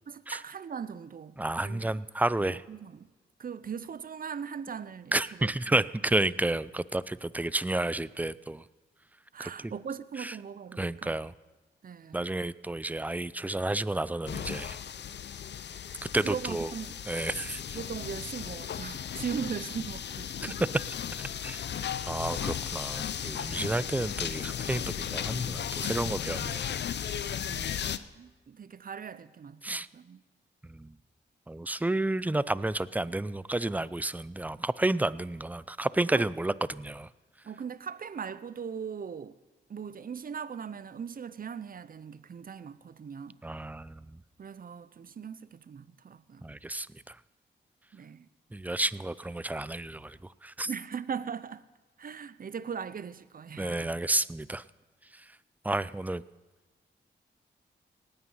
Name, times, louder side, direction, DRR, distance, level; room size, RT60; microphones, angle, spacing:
voice 1, 0.1-2.0 2.4-3.1 3.4-5.1 5.4-5.8 9.3-11.2 11.8-12.4 16.2-17.0 17.7-20.6 27.2-27.8 28.2-30.2 36.1-36.2 37.4-39.4 39.7-43.4 44.4-46.6 47.9-48.3 50.6-51.6 52.0-54.0, right 7 dB, 50° right, 0.7 m, -39 dB
voice 2, 1.4-2.6 5.1-8.6 9.4-9.7 10.2-10.3 10.8-11.3 12.1-14.8 16.1-16.7 17.1-17.6 20.4-20.5 21.4-21.6 22.1-26.7 29.6-29.9 30.7-30.9 31.5-37.1 43.4-44.2 46.4-47.2 48.5-50.7 53.6-54.6 55.6-56.2, right 2 dB, 10° right, 0.5 m, -31 dB
sound 1, 14.3-28.0, left 9 dB, 65° left, 0.6 m, -35 dB
18.5 x 9.0 x 5.6 m
cardioid pair, 50°, 19 cm